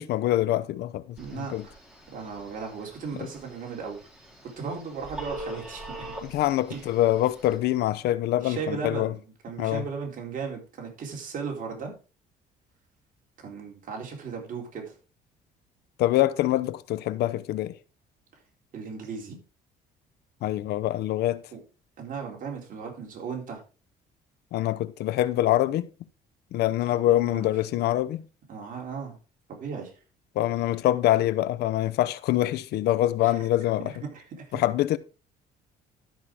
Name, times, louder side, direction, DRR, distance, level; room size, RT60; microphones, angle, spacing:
voice 1, 0.0-1.6 3.2-3.3 6.2-9.1 9.6-9.8 16.0-17.7 20.4-21.4 24.5-25.9 26.5-28.3 30.3-33.9 34.5-35.0, left 14 dB, 75° left, 0.8 m, -25 dB
Telephone, 1.2-7.6, right 1 dB, 5° right, 3.8 m, -43 dB
voice 2, 1.2-1.7 2.1-4.0 4.4-6.1 6.7-6.9 8.4-11.9 13.4-14.9 18.7-19.4 21.5-21.6 22.0-23.6 26.6-27.5 28.5-29.2 29.5-29.9 33.2-33.4 33.8-34.6, right 5 dB, 50° right, 4.2 m, -36 dB
12.5 x 5.7 x 4.8 m
cardioid pair, 110°, 17 cm